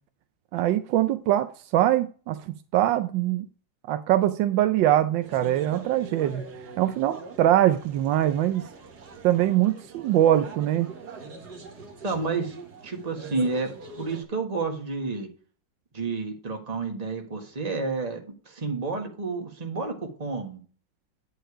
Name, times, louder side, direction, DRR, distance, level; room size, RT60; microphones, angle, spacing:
voice 1, 0.5-3.5 3.9-6.5 6.8-8.6 9.2-10.9, right 12 dB, 90° right, 1.4 m, -23 dB
sound 1, 5.2-14.2, right 4 dB, 60° right, 2.1 m, -43 dB
voice 2, 12.0-12.5 12.8-13.7 14.0-15.3 15.9-20.6, right 4 dB, 20° right, 1.6 m, -30 dB
10.5 x 5.0 x 4.9 m
omnidirectional pair, 2.0 m